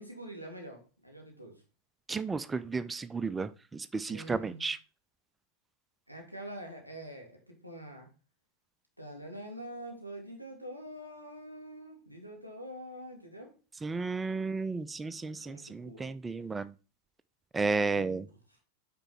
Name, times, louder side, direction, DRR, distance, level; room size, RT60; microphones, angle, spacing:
voice 1, 0.0-1.6 4.1-4.6 6.1-8.1 9.0-13.5 15.4-16.1 17.8-18.2, right 1 dB, 90° left, 2 dB, 2.6 m, -45 dB
voice 2, 2.1-4.8 13.8-16.7 17.5-18.2, right 4 dB, 15° right, 15 dB, 0.4 m, -33 dB
8.9 x 4.5 x 4.3 m, 0.34 s
figure-of-eight pair, 90°, 0 cm